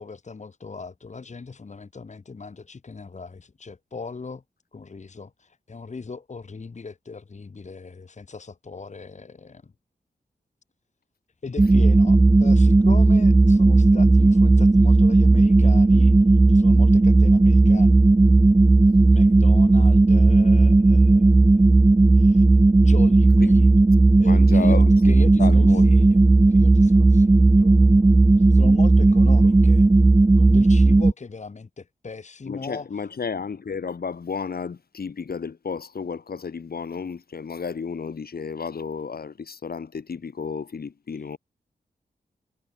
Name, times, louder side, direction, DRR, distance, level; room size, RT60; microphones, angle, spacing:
voice 1, 0.0-4.4 4.7-9.7 11.4-16.1 16.5-18.0 19.0-21.7 22.1-22.4 22.7-23.7 24.1-26.2 26.5-28.1 28.4-29.8 30.4-33.0 41.1-41.2, left 4 dB, 45° left, 1.2 m, -39 dB
sound 1, 11.6-31.1, right 2 dB, 15° right, 0.4 m, -15 dB
voice 2, 24.2-25.9 29.4-29.5 32.5-41.4, left 5 dB, 65° left, 2.6 m, -32 dB
cardioid pair, 45°, 17 cm